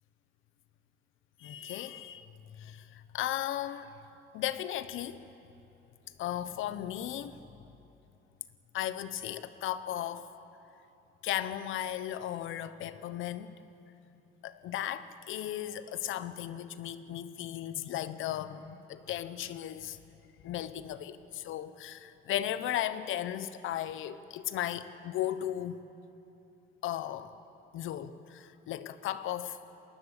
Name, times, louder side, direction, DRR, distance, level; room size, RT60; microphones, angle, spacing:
voice 1, 1.4-2.3 2.6-4.0 4.3-5.2 6.2-7.4 8.7-10.3 11.2-13.6 14.4-20.0 20.4-25.8 26.8-27.3 27.7-29.6, left 11 dB, 85° left, 13 dB, 0.9 m, -36 dB
20.5 x 18.0 x 8.2 m, 2.9 s
cardioid pair, 90°, 20 cm